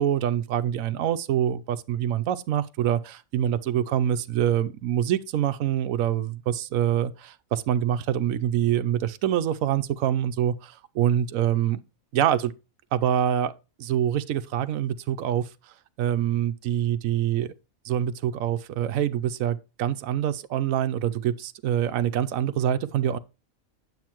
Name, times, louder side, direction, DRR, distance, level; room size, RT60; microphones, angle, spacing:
voice 1, 0.0-11.8 12.1-12.5 12.9-13.5 13.8-17.5 17.8-23.2, right 10 dB, 75° right, 1.0 m, -25 dB
9.4 x 7.7 x 3.0 m
omnidirectional pair, 1.5 m